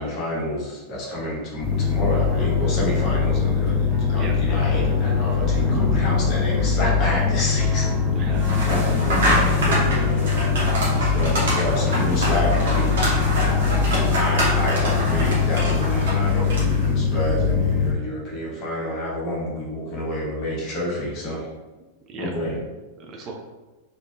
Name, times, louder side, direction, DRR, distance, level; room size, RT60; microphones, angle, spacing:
voice 1, 0.0-8.0 8.7-13.4 13.8-21.5 22.2-22.6, left 1 dB, 40° left, -4 dB, 1.1 m, -29 dB
sound 1, 1.6-17.9, left 5 dB, 10° left, 1.4 m, -22 dB
sound 2, 1.7-16.5, equal, 10° right, 0.8 m, -37 dB
voice 2, 8.1-8.8 21.8-22.3 23.0-23.4, right 3 dB, 30° right, 1 dB, 0.4 m, -37 dB
sound 3, 8.4-16.9, right 1 dB, 60° right, 1.0 m, -26 dB
3.3 x 2.6 x 2.3 m, 1.2 s
figure-of-eight pair, 90°, 0 cm